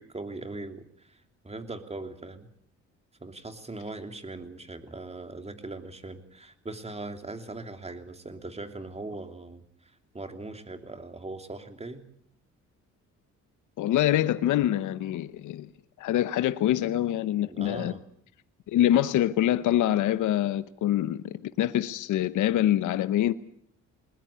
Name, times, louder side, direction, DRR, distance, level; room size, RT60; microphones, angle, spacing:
voice 1, 0.0-2.5 3.2-12.0 17.5-18.0, right 2 dB, 20° right, 3.0 m, -40 dB
voice 2, 13.8-15.7 16.0-17.9 18.7-23.3, left 12 dB, 80° left, 0.9 m, -25 dB
21.0 x 20.5 x 8.4 m
cardioid pair, 90°, 30 cm